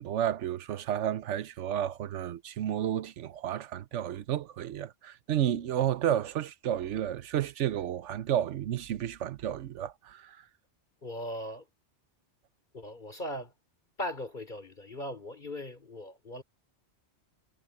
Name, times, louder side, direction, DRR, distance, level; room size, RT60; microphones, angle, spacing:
voice 1, 0.0-10.4, right 10 dB, 85° right, 1.1 m, -31 dB
voice 2, 11.0-11.7 12.7-13.5 14.0-16.4, left 1 dB, 45° left, 3.8 m, -39 dB
omnidirectional pair, 1.2 m